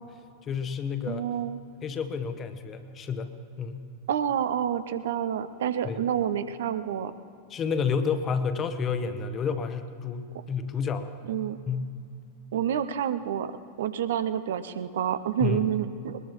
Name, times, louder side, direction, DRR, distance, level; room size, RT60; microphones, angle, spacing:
voice 1, 0.4-1.2 1.8-3.9 5.8-6.0 7.5-11.1 11.7-12.0 15.4-15.6, left 6 dB, 25° left, 10 dB, 1.0 m, -30 dB
voice 2, 1.1-1.6 4.1-7.1 11.3-11.6 12.5-13.5 13.8-16.2, right 9 dB, 60° right, 11 dB, 0.7 m, -28 dB
21.0 x 21.0 x 3.1 m, 2.2 s
figure-of-eight pair, 90°, 0 cm